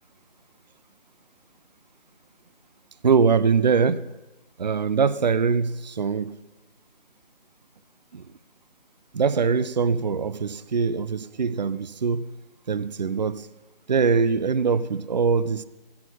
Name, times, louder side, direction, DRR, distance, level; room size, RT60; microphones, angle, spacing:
voice 1, 3.0-4.1 4.6-6.3 8.1-8.2 9.1-12.3 12.7-13.5 13.9-15.7, right 5 dB, 45° right, 0.6 m, -22 dB
16.0 x 15.5 x 5.5 m
figure-of-eight pair, 150°, 30 cm